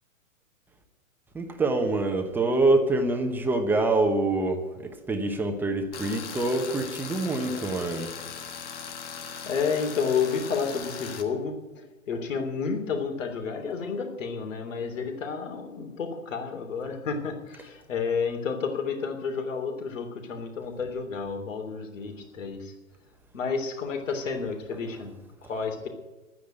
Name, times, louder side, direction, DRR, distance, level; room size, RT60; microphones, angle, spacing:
voice 1, 1.3-8.1, right 2 dB, 5° right, 5 dB, 1.0 m, -25 dB
Tools, 5.9-11.2, left 7 dB, 20° left, 1.4 m, -39 dB
voice 2, 9.4-11.6 12.1-22.7 23.3-25.1 25.5-25.9, left 5 dB, 65° left, 4 dB, 3.3 m, -30 dB
12.0 x 9.5 x 8.9 m, 1.2 s
hypercardioid pair, 135°, 41 cm